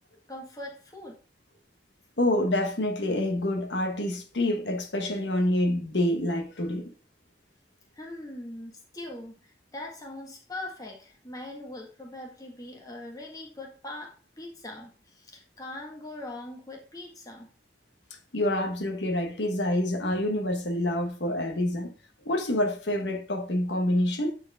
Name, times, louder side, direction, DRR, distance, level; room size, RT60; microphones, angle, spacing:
voice 1, 0.3-1.2 7.9-17.5, left 1 dB, 20° left, 1.6 m, -41 dB
voice 2, 2.2-6.9 18.3-21.9 22.2-24.3, left 1 dB, 80° left, 1.2 m, -27 dB
8.3 x 4.6 x 3.5 m
head